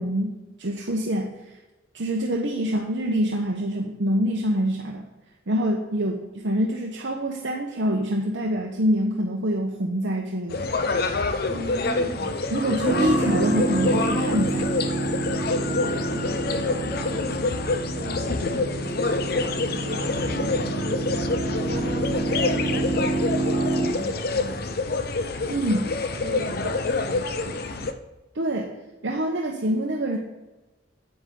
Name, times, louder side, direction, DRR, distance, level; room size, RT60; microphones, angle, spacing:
voice 1, 0.0-1.5 1.9-5.0 5.5-10.7 12.5-14.7 25.5-25.9 28.3-28.7 29.0-30.2, equal, 65° right, 0 dB, 0.9 m, -25 dB
sound 1, 10.5-27.9, left 3 dB, 50° left, 0.6 m, -27 dB
voice 2, 11.5-12.7 15.6-17.5 17.9-21.4 21.7-25.0 25.7-25.9 26.2-27.9, right 1 dB, 40° right, -5 dB, 3.6 m, -39 dB
Piano, 12.9-23.9, right 2 dB, 20° left, 2.8 m, -28 dB
9.7 x 8.1 x 3.8 m, 1.1 s
head